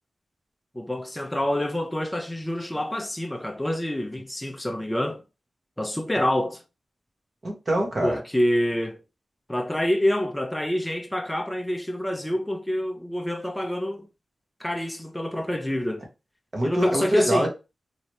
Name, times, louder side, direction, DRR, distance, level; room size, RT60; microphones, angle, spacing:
voice 1, 0.7-5.2 5.8-6.6 8.0-9.0 9.5-14.1 14.6-16.0 16.6-17.5, left 1 dB, 10° left, 0.5 m, -27 dB
voice 2, 7.4-8.2 16.5-17.5, right 1 dB, 45° right, 1.3 m, -24 dB
3.1 x 3.0 x 2.8 m
wide cardioid pair, 80°, 0 cm